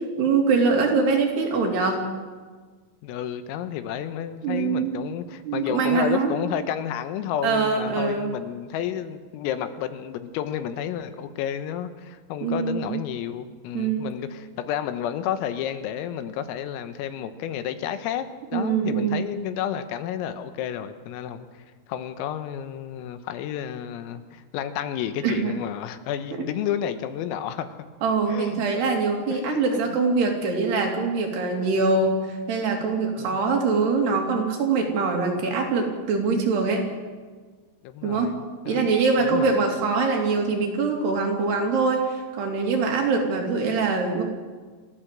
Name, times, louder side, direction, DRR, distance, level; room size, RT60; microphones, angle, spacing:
voice 1, 0.2-2.1 4.4-5.0 5.5-6.4 7.4-8.3 12.4-12.9 13.7-14.1 18.5-19.3 25.2-25.5 28.0-32.2 32.5-36.9 38.0-38.3 38.7-44.2, right 4 dB, 55° right, 1 dB, 4.6 m, -23 dB
voice 2, 3.0-18.3 18.5-21.5 21.9-27.7 28.3-28.7 29.3-29.8 31.6-31.7 33.2-33.4 36.4-36.5 37.8-38.9 39.3-39.6, left 10 dB, 90° left, 10 dB, 3.9 m, -31 dB
28.0 x 15.0 x 7.7 m, 1.5 s
omnidirectional pair, 5.9 m